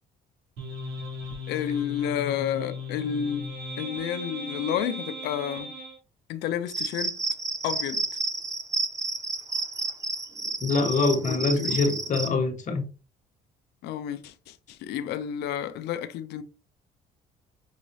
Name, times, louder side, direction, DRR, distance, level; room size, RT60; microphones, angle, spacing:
sound 1, 0.6-6.0, left 2 dB, 80° right, 2.6 m, -37 dB
voice 1, 1.5-3.5 3.8-5.7 6.3-7.1 7.6-8.0 11.3-11.8 13.8-16.4, left 9 dB, 80° left, 0.5 m, -30 dB
Cricket, 6.7-12.3, right 3 dB, 20° right, 0.6 m, -31 dB
voice 2, 10.6-12.8, left 3 dB, 45° left, 1.3 m, -24 dB
5.7 x 3.0 x 2.7 m
cardioid pair, 110°, 17 cm